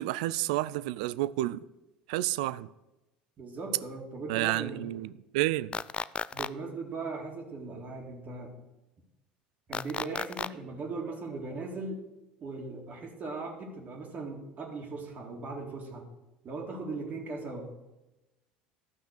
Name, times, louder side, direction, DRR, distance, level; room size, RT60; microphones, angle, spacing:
voice 1, 0.0-1.6 2.1-2.7 4.3-5.8, right 16 dB, 65° right, 0.4 m, -30 dB
voice 2, 3.4-4.9 6.3-8.5 9.7-12.0 12.4-16.1 16.4-17.7, right 3 dB, 40° right, 2.1 m, -38 dB
sound 1, 5.7-6.5 9.7-10.5, left 6 dB, 25° left, 0.3 m, -33 dB
12.5 x 5.7 x 6.4 m
figure-of-eight pair, 65°, 5 cm